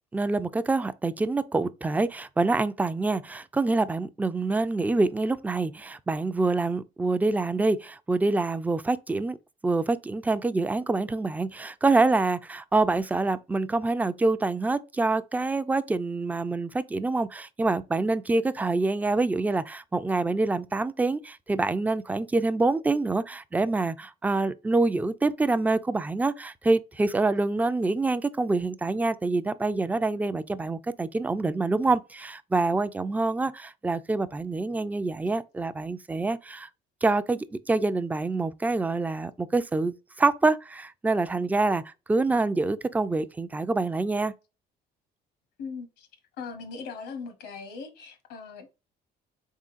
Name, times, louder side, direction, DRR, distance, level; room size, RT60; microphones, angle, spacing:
voice 1, 0.1-9.4 9.6-36.7 37.0-44.3, right 3 dB, 10° right, 0.3 m, -26 dB
voice 2, 45.6-46.1 46.4-48.7, left 5 dB, 80° left, 1.1 m, -39 dB
3.7 x 3.7 x 2.5 m
cardioid pair, 95°, 17 cm